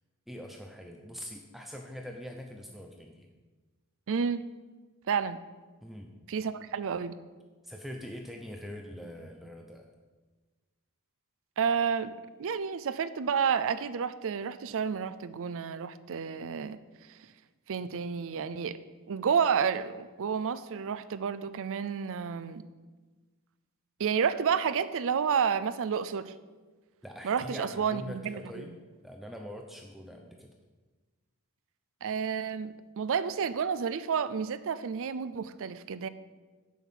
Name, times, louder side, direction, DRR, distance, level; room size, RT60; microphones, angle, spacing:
voice 1, 0.3-3.3 5.8-6.1 7.6-9.9 27.0-28.7 29.0-30.5, equal, ahead, 2 dB, 0.6 m, -43 dB
voice 2, 4.1-4.5 5.1-5.4 6.3-7.2 11.6-12.1 12.4-16.8 17.7-18.8 19.1-22.7 24.0-26.3 27.2-28.6 32.0-36.1, right 6 dB, 60° right, 14 dB, 0.5 m, -30 dB
7.2 x 5.9 x 7.3 m, 1.3 s
head